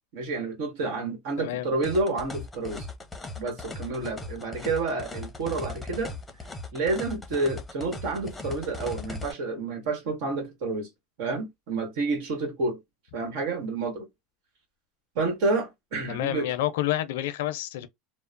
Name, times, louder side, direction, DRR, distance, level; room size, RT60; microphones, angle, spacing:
voice 1, 0.1-2.8 3.4-6.1 6.7-10.9 11.2-12.8 13.1-14.1 15.1-16.5, right 3 dB, 70° right, 1.2 m, -29 dB
voice 2, 1.4-1.7 16.1-17.9, left 13 dB, 85° left, 0.5 m, -29 dB
sound 1, 1.8-9.3, left 3 dB, 10° left, 0.7 m, -39 dB
2.9 x 2.0 x 2.4 m
supercardioid pair, 115°, 0 cm